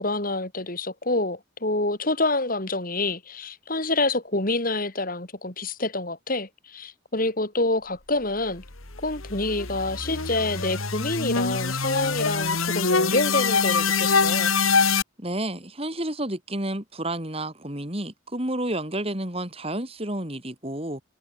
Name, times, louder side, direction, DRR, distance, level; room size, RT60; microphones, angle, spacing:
voice 1, 0.0-8.6 9.0-14.5, left 2 dB, 40° left, 2.7 m, -27 dB
sound 1, 8.6-15.0, left 5 dB, 80° left, 3.4 m, -24 dB
voice 2, 15.2-21.0, right 1 dB, 30° right, 4.2 m, -30 dB
head